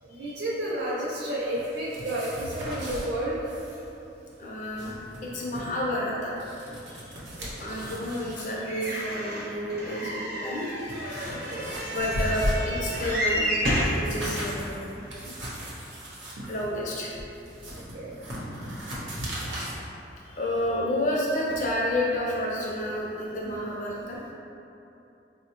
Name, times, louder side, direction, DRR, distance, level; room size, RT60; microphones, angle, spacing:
voice 1, 0.0-3.5 6.7-7.7 11.1-12.0 16.4-16.5 17.7-18.2, right 1 dB, 70° right, -6 dB, 0.4 m, -33 dB
sound 1, 1.5-3.1 3.4-3.8 4.1-4.2 4.6-5.7 6.2-8.5 8.8-9.1 9.9-10.0 10.5-13.2 13.5-19.8, equal, 85° right, 0.8 m, -36 dB
voice 2, 4.4-4.9 5.2-6.3 7.6-11.3 11.9-13.6 13.9-14.7 16.5-17.1 20.3-24.2, left 1 dB, 45° left, -4 dB, 0.5 m, -30 dB
sound 2, 8.6-14.0 14.7-14.8 15.1-15.2, equal, 50° right, 0.8 m, -30 dB
4.2 x 2.1 x 2.9 m, 2.8 s
head